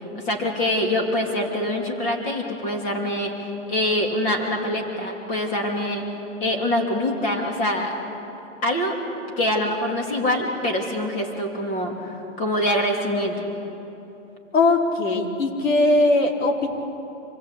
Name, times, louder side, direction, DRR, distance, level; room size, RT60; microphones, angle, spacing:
voice 1, 0.1-6.1 6.4-7.9 8.6-9.0 9.4-13.4, left 1 dB, 20° left, 2 dB, 3.0 m, -24 dB
voice 2, 14.5-16.7, left 2 dB, 90° left, 1 dB, 4.2 m, -20 dB
26.0 x 19.5 x 8.5 m, 2.9 s
hypercardioid pair, 160°, 38 cm